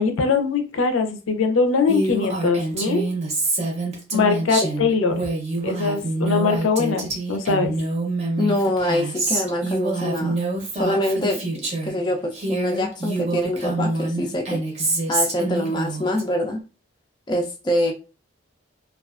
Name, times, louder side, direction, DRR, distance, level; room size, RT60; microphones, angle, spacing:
voice 1, 0.0-3.0 4.1-5.3 5.6-7.7, left 4 dB, 85° left, 6 dB, 0.5 m, -21 dB
Female speech woman speaking, 1.9-12.0 12.3-16.2, right 2 dB, 35° right, 0.6 m, -26 dB
voice 2, 8.4-10.4 10.7-16.6 17.3-17.9, left 1 dB, 20° left, 2 dB, 0.3 m, -25 dB
2.3 x 2.3 x 2.3 m, 0.33 s
head